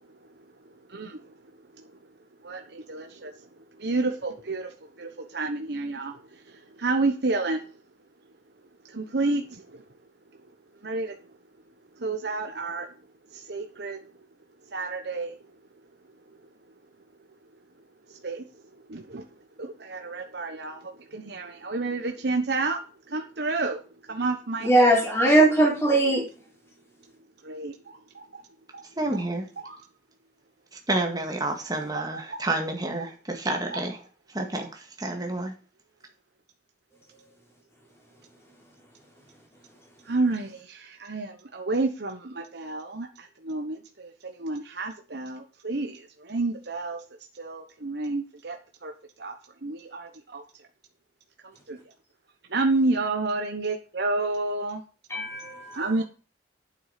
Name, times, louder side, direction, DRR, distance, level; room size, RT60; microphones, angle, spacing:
voice 1, 0.9-1.2 2.4-3.3 3.8-4.7 5.0-6.1 6.8-7.6 8.9-9.8 10.8-11.2 12.0-12.9 13.3-14.0 14.7-15.3 18.2-18.4 18.9-19.2 19.6-20.8 21.1-22.8 23.1-23.8 24.1-25.0 27.4-28.4 28.7-28.8 29.6-29.8 32.3-32.4 33.7-33.8 40.1-47.0 47.4-48.6 48.8-48.9 49.2-49.3 49.6-50.4 51.7-51.8 52.5-54.8 55.7-56.0, right 3 dB, 65° right, 1.1 m, -30 dB
voice 2, 24.6-26.2 55.1-55.8, right 1 dB, 15° left, 4.5 m, -20 dB
voice 3, 29.0-29.5 30.9-34.0 34.3-35.5, right 2 dB, 20° right, 2.0 m, -29 dB
9.2 x 7.3 x 5.2 m
head